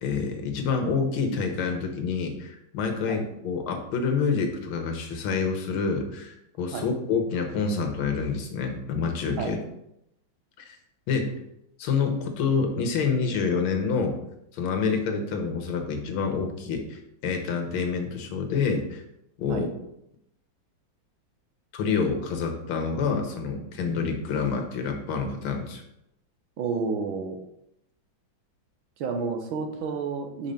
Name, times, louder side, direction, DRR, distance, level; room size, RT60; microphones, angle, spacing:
voice 1, 0.0-9.6 10.6-10.8 11.1-11.3 11.8-14.2 14.5-19.0 19.4-19.7 21.7-25.8, left 5 dB, 90° left, 4 dB, 1.9 m, -27 dB
voice 2, 26.6-27.4 29.0-30.5, right 4 dB, 80° right, 4 dB, 1.7 m, -30 dB
5.5 x 4.7 x 5.1 m, 0.81 s
omnidirectional pair, 2.2 m